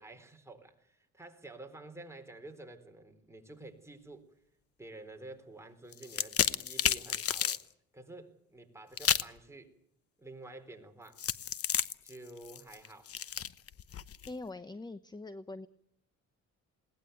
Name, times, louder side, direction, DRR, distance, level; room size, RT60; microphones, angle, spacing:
voice 1, 0.0-4.3 4.8-7.6 7.9-9.8 10.2-11.2 12.0-13.1, right 2 dB, 10° right, 4.0 m, -50 dB
sound 1, 5.9-7.6 9.0-9.4 11.2-14.3, left 9 dB, 50° left, 1.0 m, -32 dB
voice 2, 14.3-15.7, left 2 dB, 15° left, 0.9 m, -43 dB
21.5 x 18.0 x 9.3 m
cardioid pair, 90°, 30 cm